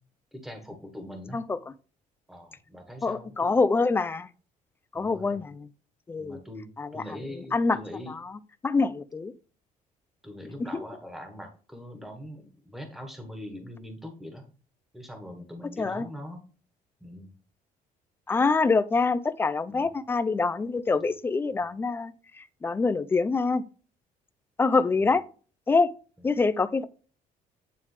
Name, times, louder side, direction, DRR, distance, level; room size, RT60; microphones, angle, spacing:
voice 1, 0.3-1.5 2.3-3.5 4.9-5.4 6.2-6.7 6.9-8.1 10.2-14.4 14.9-16.4 17.0-17.3 19.7-19.9 26.2-26.3, left 1 dB, ahead, 1.4 m, -42 dB
voice 2, 3.0-4.3 4.9-5.7 6.1-6.4 6.8-7.8 8.1-9.3 10.7-10.8 15.8-16.1 18.3-23.6 24.6-25.2 25.7-25.9 26.2-26.8, left 4 dB, 15° left, 0.4 m, -25 dB
9.4 x 3.4 x 3.3 m
cardioid pair, 150°, 15 cm